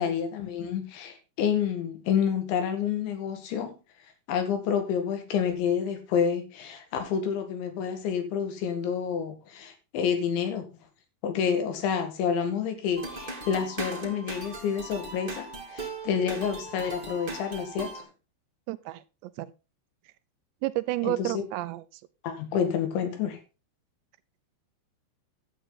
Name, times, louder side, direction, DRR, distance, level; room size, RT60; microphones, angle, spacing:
voice 1, 0.0-3.8 4.3-10.6 11.2-18.1 21.0-21.4 22.2-23.4, left 7 dB, 90° left, 7 dB, 4.4 m, -29 dB
sound 1, 13.0-18.0, right 2 dB, 15° right, 2.0 m, -38 dB
voice 2, 18.7-19.5 20.6-22.0, right 18 dB, 85° right, 14 dB, 2.9 m, -31 dB
11.5 x 9.0 x 3.9 m, 0.29 s
omnidirectional pair, 5.1 m